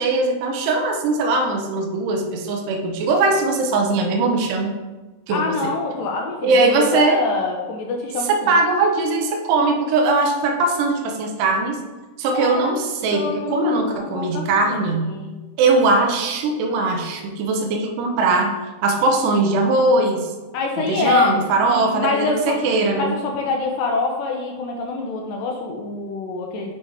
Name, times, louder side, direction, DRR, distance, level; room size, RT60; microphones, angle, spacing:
voice 1, 0.0-4.8 5.3-5.7 6.4-7.2 8.3-11.8 12.2-13.3 13.5-15.1 15.6-20.3 20.8-23.2, right 3 dB, 85° right, 3 dB, 1.9 m, -20 dB
voice 2, 5.3-8.5 12.3-12.8 13.1-14.8 15.1-15.3 20.5-21.4 21.6-22.6 22.9-26.7, left 3 dB, 80° left, 1 dB, 2.0 m, -25 dB
7.8 x 3.2 x 4.6 m, 1.2 s
omnidirectional pair, 4.5 m